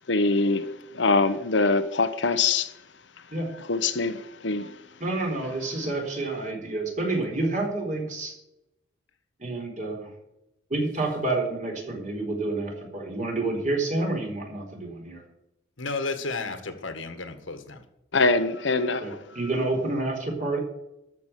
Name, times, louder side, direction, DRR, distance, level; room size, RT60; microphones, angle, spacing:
voice 1, 0.1-2.7 3.7-4.7 18.1-19.2, left 3 dB, 65° left, 1.0 m, -24 dB
voice 2, 5.0-8.3 9.4-10.1 10.7-15.2 19.0-20.6, right 2 dB, 40° right, 4.3 m, -29 dB
voice 3, 15.8-17.9, left 3 dB, 80° left, 1.8 m, -33 dB
13.5 x 6.0 x 8.3 m
head